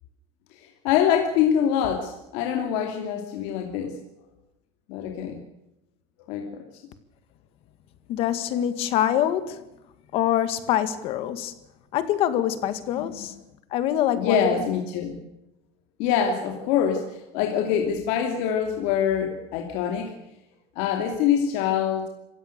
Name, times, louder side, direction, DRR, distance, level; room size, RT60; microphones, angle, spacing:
voice 1, 0.6-4.0 4.9-5.4 6.3-6.6 13.0-13.3 14.1-15.2 16.0-20.1 20.7-22.1, left 8 dB, 60° left, 2.8 m, -25 dB
voice 2, 8.1-9.6 10.1-11.5 11.9-13.3 13.7-14.4, left 11 dB, 45° left, 1.9 m, -25 dB
27.0 x 16.0 x 6.7 m
cardioid pair, 175°, 14 cm